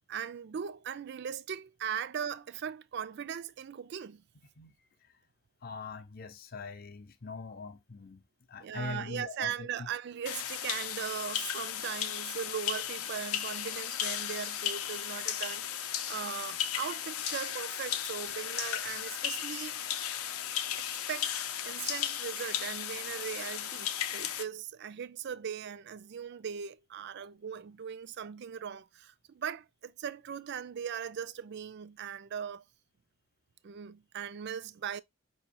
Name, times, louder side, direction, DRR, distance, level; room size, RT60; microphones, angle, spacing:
voice 1, 0.1-4.2 8.6-20.0 20.8-21.3 21.6-32.6 33.6-35.0, right 8 dB, 50° right, 0.3 m, -39 dB
voice 2, 4.6-5.2 5.6-9.9, left 4 dB, 45° left, 0.6 m, -43 dB
sound 1, 10.3-24.4, left 10 dB, 85° left, 0.6 m, -35 dB
5.2 x 3.0 x 2.9 m
head